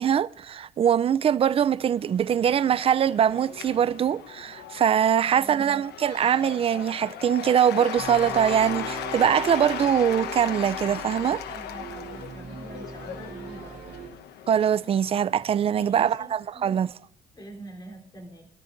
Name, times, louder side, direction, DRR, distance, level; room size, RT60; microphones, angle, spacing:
voice 1, 0.0-11.4 14.5-16.9, right 9 dB, 35° right, 0.4 m, -23 dB
Cheering / Applause / Crowd, 1.9-15.3, left 9 dB, 80° left, 1.0 m, -37 dB
voice 2, 5.3-5.8 11.5-13.8 15.7-16.9 17.3-18.5, right 2 dB, 25° left, 3.6 m, -44 dB
sound 1, 7.9-14.1, right 6 dB, 55° right, 3.1 m, -40 dB
23.0 x 13.0 x 2.6 m
cardioid pair, 110°, 17 cm